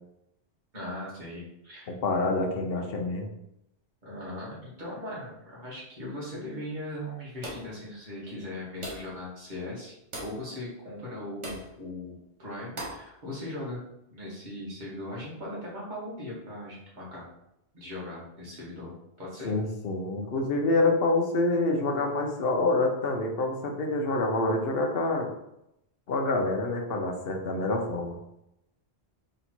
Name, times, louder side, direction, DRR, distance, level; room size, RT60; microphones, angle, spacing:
voice 1, 0.7-1.9 4.0-13.8 14.1-17.3 17.7-18.9 19.2-19.5, left 1 dB, 40° right, -6 dB, 1.8 m, -39 dB
voice 2, 1.9-3.3 19.4-25.3 26.1-28.2, left 2 dB, 60° left, 2 dB, 1.0 m, -27 dB
sound 1, 7.4-7.8 8.8-9.2 10.1-10.4 11.4-11.7 12.8-13.1, right 1 dB, 80° right, 1.5 m, -38 dB
4.0 x 2.9 x 4.4 m, 0.81 s
omnidirectional pair, 1.2 m